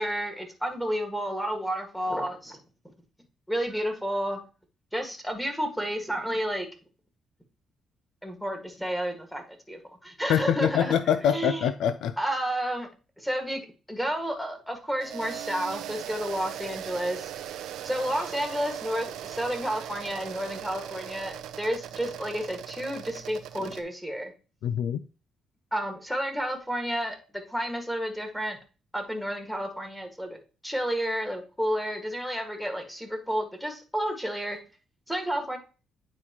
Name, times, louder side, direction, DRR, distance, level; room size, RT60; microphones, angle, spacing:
voice 1, 0.0-2.6 3.5-4.4 4.9-6.7 8.2-10.9 11.3-11.6 12.2-12.9 13.2-17.3 17.8-24.3 25.7-27.2 27.5-28.6 28.9-30.4 30.6-34.6 35.1-35.6, equal, ahead, 1.7 m, -31 dB
voice 2, 10.3-12.2 24.6-25.0, left 9 dB, 80° left, 0.3 m, -24 dB
sound 1, 15.0-23.8, right 11 dB, 85° right, 0.5 m, -39 dB
9.6 x 4.1 x 2.9 m
cardioid pair, 90°, 0 cm